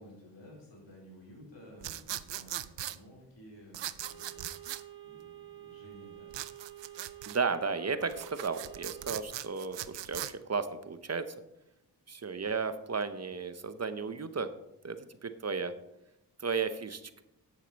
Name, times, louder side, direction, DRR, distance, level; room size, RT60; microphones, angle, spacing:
voice 1, 0.0-6.3, equal, 85° left, -3 dB, 4.0 m, -54 dB
sound 1, 1.8-3.0 3.7-4.8 6.3-7.4 8.0-10.3, right 12 dB, 90° right, 0.5 m, -39 dB
sound 2, 4.0-9.2, right 12 dB, 25° left, 3.4 m, -49 dB
voice 2, 7.3-11.3 12.1-14.5 14.8-15.0 15.2-15.7 16.4-17.2, right 5 dB, 40° right, 11 dB, 0.7 m, -34 dB
10.0 x 8.2 x 4.0 m, 0.89 s
wide cardioid pair, 75°, 42 cm